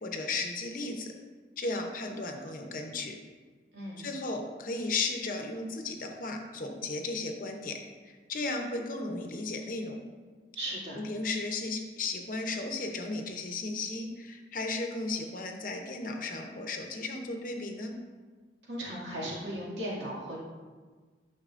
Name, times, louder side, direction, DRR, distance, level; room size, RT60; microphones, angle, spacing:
voice 1, 0.0-1.1 1.6-3.1 4.0-7.8 8.0-10.0 10.9-17.9, left 3 dB, 45° left, 3 dB, 0.7 m, -35 dB
voice 2, 10.5-11.0 18.7-20.4, right 1 dB, 75° right, -5 dB, 2.3 m, -36 dB
10.0 x 5.9 x 2.5 m, 1.4 s
head